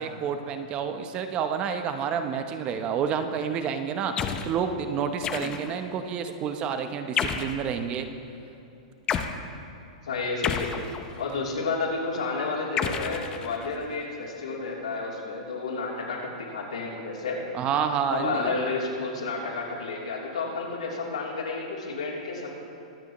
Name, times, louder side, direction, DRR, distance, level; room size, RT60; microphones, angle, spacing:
voice 1, 0.0-8.1 17.5-18.5, right 7 dB, 30° right, 8 dB, 0.8 m, -29 dB
sound 1, 4.2-4.6 5.2-5.8 7.2-7.6 9.1-9.4 10.4-11.3 12.8-13.8, left 7 dB, 20° left, 0.6 m, -30 dB
voice 2, 10.1-10.7 11.2-17.4 18.1-22.5, left 3 dB, 90° left, -3 dB, 3.1 m, -31 dB
23.0 x 8.9 x 3.1 m, 2.8 s
hypercardioid pair, 145°, 4 cm